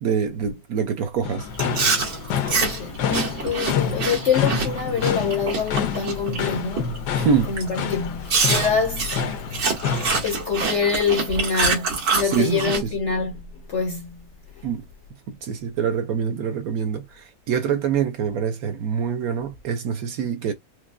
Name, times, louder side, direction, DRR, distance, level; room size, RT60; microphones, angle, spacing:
voice 1, 0.0-1.5 7.1-7.5 12.2-12.9 14.6-14.8 15.3-20.5, right 7 dB, 70° right, 1.0 m, -25 dB
sound 1, 1.2-10.2, left 7 dB, 75° left, 1.2 m, -28 dB
Chewing mastication, 1.5-6.4 6.8-7.1 7.6-7.7 8.3-12.8, right 4 dB, 90° right, 2.0 m, -25 dB
voice 2, 2.6-7.0 7.5-9.2 10.2-13.4 13.7-14.2, left 5 dB, 60° left, 0.7 m, -25 dB
4.5 x 2.1 x 2.4 m
omnidirectional pair, 1.8 m